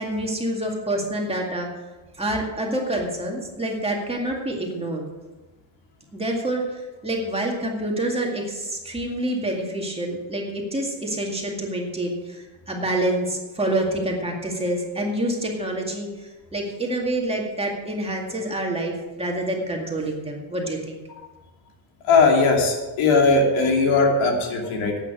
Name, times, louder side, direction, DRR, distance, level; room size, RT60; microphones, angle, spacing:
voice 1, 0.0-1.7 2.2-5.0 6.1-6.6 7.0-16.1 16.5-21.0, right 1 dB, 10° right, 0 dB, 2.1 m, -27 dB
voice 2, 22.1-25.0, left 3 dB, 90° left, 1 dB, 2.9 m, -19 dB
11.5 x 8.9 x 6.3 m, 1.1 s
cardioid pair, 155°, 47 cm